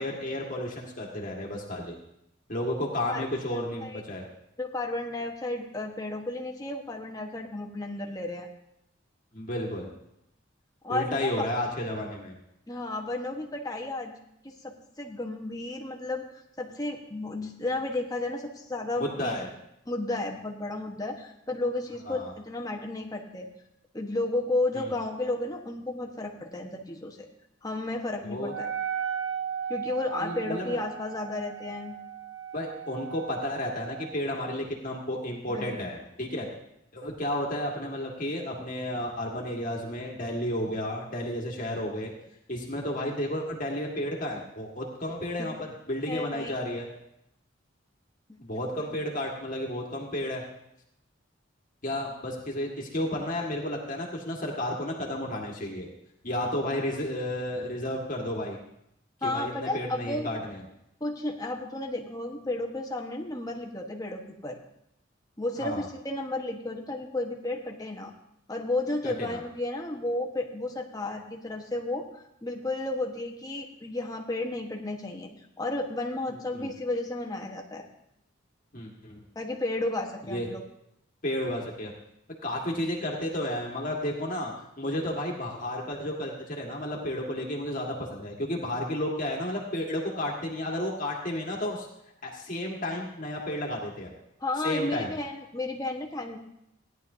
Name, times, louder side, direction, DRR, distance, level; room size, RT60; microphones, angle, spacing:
voice 1, 0.0-2.0 2.5-4.2 9.3-9.9 10.9-12.4 19.0-19.5 22.1-22.3 24.7-24.9 28.2-28.5 30.2-30.8 32.5-36.5 36.9-42.1 42.5-46.9 48.4-50.4 51.8-55.9 56.2-58.6 59.2-60.6 65.6-65.9 69.0-69.4 76.3-76.7 78.7-79.2 80.3-80.5 81.2-81.9 82.4-91.9 92.2-94.1 94.6-95.1, left 1 dB, 40° left, -1 dB, 1.8 m, -32 dB
voice 2, 3.1-4.0 4.6-8.5 10.8-11.4 12.7-14.1 14.4-16.3 16.6-19.4 19.8-23.5 23.9-27.3 27.6-28.7 29.7-31.9 35.5-35.7 45.4-45.5 46.1-46.5 48.3-48.4 48.8-48.9 59.2-60.3 61.0-64.6 65.4-68.1 68.5-72.1 72.4-75.3 75.6-77.9 79.3-80.6 94.4-96.4, left 2 dB, 20° left, 1 dB, 1.3 m, -33 dB
Wind instrument woodwind instrument, 28.4-34.2, right 8 dB, 65° right, 1.0 m, -36 dB
17.0 x 11.0 x 2.8 m, 0.80 s
head